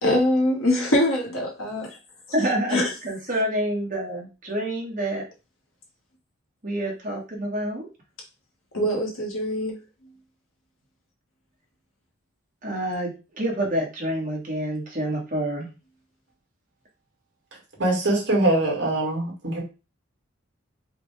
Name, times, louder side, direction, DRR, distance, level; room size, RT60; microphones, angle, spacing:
voice 1, 0.0-2.0 2.7-2.9 8.7-9.8, left 1 dB, 80° left, 1.4 m, -23 dB
voice 2, 2.3-5.2 6.6-7.9 12.6-15.7, right 1 dB, 40° right, 1.3 m, -27 dB
voice 3, 17.8-19.6, right 2 dB, 55° right, 1.8 m, -23 dB
4.9 x 2.3 x 3.2 m
head